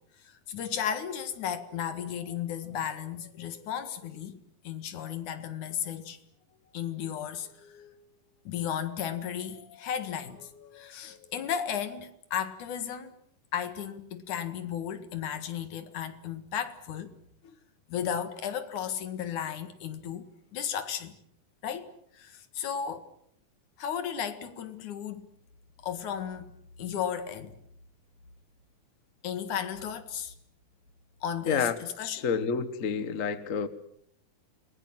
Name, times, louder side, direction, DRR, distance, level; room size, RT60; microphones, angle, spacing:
voice 1, 0.2-4.4 4.6-6.2 6.7-7.9 8.4-13.1 13.5-17.1 17.4-17.6 17.9-21.1 21.6-23.1 23.8-25.3 25.8-26.5 26.8-27.6 29.2-30.3 31.2-32.3, left 8 dB, 75° left, 3.2 m, -34 dB
voice 2, 32.1-33.7, left 6 dB, 45° left, 1.1 m, -29 dB
29.0 x 21.5 x 7.6 m
omnidirectional pair, 3.5 m